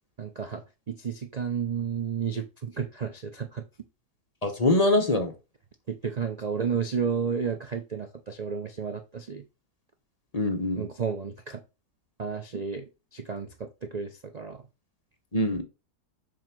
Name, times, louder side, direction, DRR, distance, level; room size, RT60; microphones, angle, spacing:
voice 1, 0.2-3.6 5.9-9.4 10.8-11.6 12.2-14.6, right 6 dB, 75° right, 0.3 m, -32 dB
voice 2, 4.4-5.3 10.3-10.9 15.3-15.6, left 2 dB, 25° left, 0.9 m, -24 dB
7.5 x 3.0 x 6.0 m
omnidirectional pair, 1.8 m